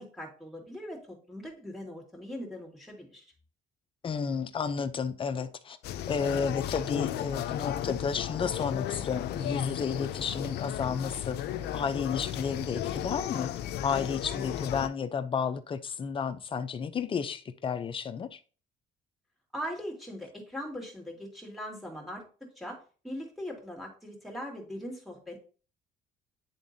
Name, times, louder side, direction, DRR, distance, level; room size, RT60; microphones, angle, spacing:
voice 1, 0.0-3.3 19.5-22.2 22.6-22.8 23.0-25.5, equal, ahead, 2.5 m, -40 dB
voice 2, 4.0-5.8 6.1-11.4 11.7-13.5 13.8-18.4, left 6 dB, 30° left, 0.6 m, -32 dB
sound 1, 5.8-14.9, left 11 dB, 75° left, 0.5 m, -34 dB
10.0 x 3.6 x 2.7 m
cardioid pair, 110°, 17 cm